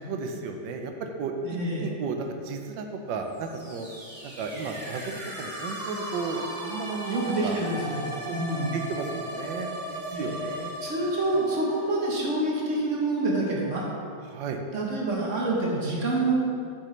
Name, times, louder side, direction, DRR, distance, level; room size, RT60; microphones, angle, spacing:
voice 1, 0.0-3.9 4.2-7.6 8.2-8.4 8.7-10.7 14.3-14.6, right 4 dB, 90° right, 4 dB, 1.4 m, -34 dB
voice 2, 1.4-1.9 7.1-8.8 10.1-10.4 10.8-13.8 14.7-16.3, right 2 dB, 50° right, -3 dB, 1.2 m, -27 dB
sound 1, 3.3-13.0, equal, 20° right, 1.5 m, -37 dB
7.8 x 6.5 x 3.2 m, 2.3 s
omnidirectional pair, 2.0 m